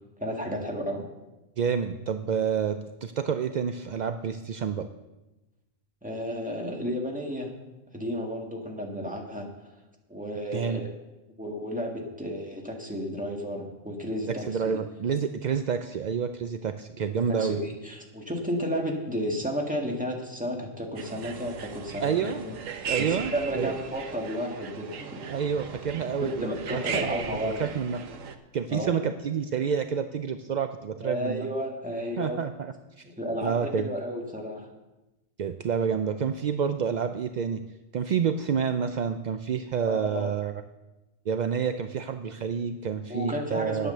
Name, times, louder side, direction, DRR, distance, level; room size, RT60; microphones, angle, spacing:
voice 1, 0.2-1.0 6.0-7.5 7.9-9.5 10.1-10.9 11.4-14.8 17.3-22.5 23.0-25.3 26.2-27.6 28.7-29.0 31.0-32.4 33.2-34.7 39.9-40.3 43.1-43.9, equal, 5° right, 0 dB, 1.8 m, -32 dB
voice 2, 1.6-4.9 10.5-10.8 14.5-17.6 22.0-22.4 22.9-23.7 25.3-27.2 27.6-28.0 28.5-31.5 32.2-33.0 33.4-33.9 35.4-37.6 37.9-40.5 41.3-43.9, right 7 dB, 60° right, 8 dB, 0.4 m, -28 dB
sound 1, 21.0-28.4, right 6 dB, 85° right, 1.2 m, -37 dB
9.8 x 9.1 x 6.7 m, 1.0 s
omnidirectional pair, 1.3 m